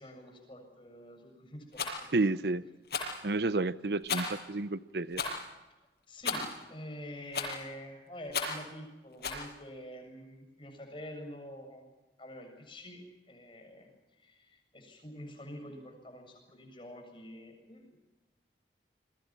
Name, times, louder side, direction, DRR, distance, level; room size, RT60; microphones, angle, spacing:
voice 1, 0.0-2.1 6.1-11.9 12.2-13.0 13.3-13.9 14.2-18.0, left 1 dB, 30° left, 3 dB, 7.4 m, -47 dB
Rattle, 1.7-2.0 2.9-3.2 4.1-4.4 5.1-5.4 6.2-6.6 7.3-7.7 8.3-8.6 9.2-9.4, left 4 dB, 65° left, 6.9 m, -34 dB
voice 2, 2.1-2.6 3.2-5.2, right 2 dB, 70° right, 15 dB, 0.8 m, -30 dB
28.5 x 22.5 x 6.0 m, 1.1 s
head